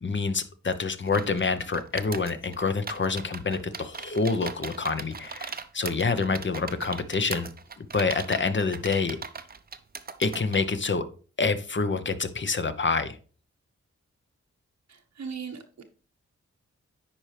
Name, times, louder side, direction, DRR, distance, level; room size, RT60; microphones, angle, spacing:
voice 1, 0.0-7.5 7.8-9.2 10.2-11.1 11.4-13.2, left 4 dB, 40° left, 11 dB, 0.8 m, -27 dB
sound 1, 1.1-10.7, right 5 dB, 30° right, 0.6 m, -39 dB
voice 2, 14.9-15.8, right 6 dB, 70° right, 4 dB, 0.9 m, -38 dB
9.8 x 4.4 x 3.2 m, 0.39 s
cardioid pair, 50°, 29 cm